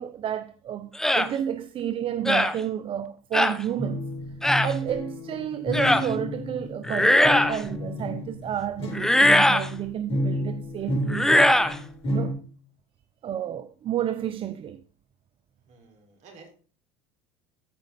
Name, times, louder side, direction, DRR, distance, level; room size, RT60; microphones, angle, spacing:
voice 1, 0.0-4.0 4.6-11.6 12.1-12.4 13.2-14.8, right 10 dB, 40° right, 0.6 m, -31 dB
sound 1, 1.0-1.3 2.3-2.6 3.3-3.6 4.4-4.7 5.7-6.1 6.8-7.6 8.9-9.7 11.1-11.8, left 1 dB, 5° left, 0.7 m, -20 dB
sound 2, 3.8-12.3, left 1 dB, 45° left, 3.9 m, -31 dB
voice 2, 15.6-16.5, right 4 dB, 55° right, 4.5 m, -51 dB
13.5 x 5.0 x 4.1 m
supercardioid pair, 90°, 14 cm